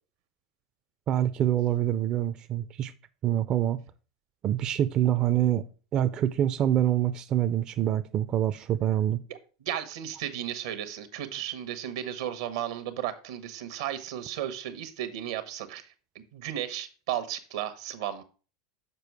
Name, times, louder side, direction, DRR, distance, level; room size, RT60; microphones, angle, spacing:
voice 1, 1.1-2.9 3.2-3.8 4.4-5.6 5.9-9.2, right 11 dB, 35° right, 0.4 m, -25 dB
voice 2, 9.3-18.2, right 11 dB, 75° right, 1.1 m, -35 dB
6.8 x 4.9 x 4.6 m
supercardioid pair, 115°, 2 cm